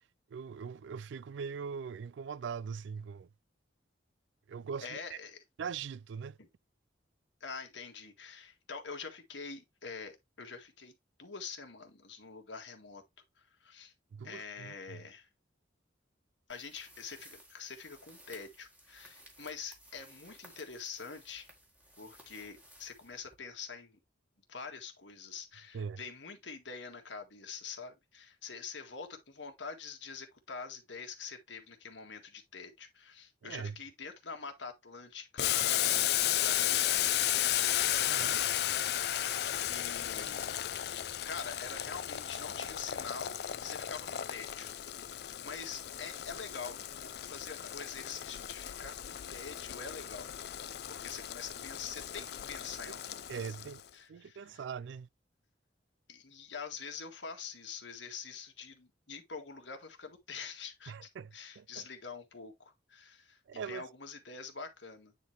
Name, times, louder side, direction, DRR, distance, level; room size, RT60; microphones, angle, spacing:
voice 1, 0.3-3.3 4.5-5.2 5.6-6.4 14.1-15.0 25.7-26.0 33.4-33.8 38.0-38.5 52.9-53.0 53.3-53.8 54.1-55.1 60.9-61.8 63.5-63.8, right 6 dB, 80° right, 0.3 m, -41 dB
voice 2, 4.8-5.4 6.4-6.5 7.4-10.9 11.2-13.0 13.4-13.9 14.2-15.3 16.5-21.5 22.0-24.0 24.5-37.2 39.7-40.6 41.3-44.8 45.1-54.6 56.1-65.1, left 5 dB, 85° left, 1.8 m, -46 dB
sound 1, 16.5-23.6, equal, 10° right, 1.7 m, -58 dB
Boiling, 35.4-53.8, left 12 dB, 60° left, 0.4 m, -34 dB
9.4 x 4.0 x 3.2 m
head